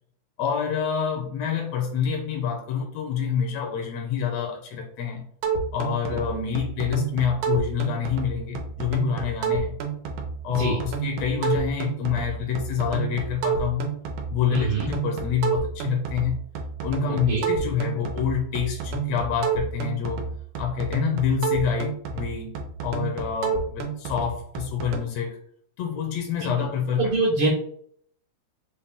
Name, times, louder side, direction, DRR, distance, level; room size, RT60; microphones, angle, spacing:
voice 1, 0.4-5.2 5.7-9.7 10.4-13.9 14.3-16.4 16.8-20.3 20.6-22.6 22.8-25.4 25.8-27.1, left 8 dB, 80° left, 2 dB, 1.6 m, -27 dB
sound 1, 5.4-25.0, right 5 dB, 85° right, 2.2 m, -30 dB
voice 2, 10.5-10.8 14.5-14.9 17.3-17.4 26.4-26.7 27.0-27.5, right 2 dB, 65° right, -4 dB, 1.4 m, -24 dB
5.5 x 2.2 x 3.5 m, 0.64 s
omnidirectional pair, 3.4 m